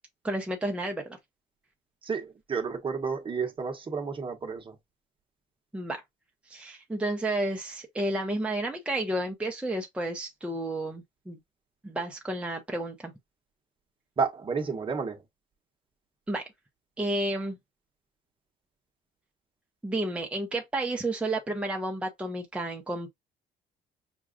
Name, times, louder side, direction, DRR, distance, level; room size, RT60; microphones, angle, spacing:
voice 1, 0.2-1.2 5.7-6.0 6.5-11.4 11.8-13.1 16.3-16.5 17.0-17.6 19.8-23.1, right 1 dB, 5° right, 0.8 m, -31 dB
voice 2, 2.0-4.8 14.2-15.2, right 5 dB, 30° right, 1.1 m, -31 dB
6.1 x 2.4 x 2.4 m
cardioid pair, 110°, 17 cm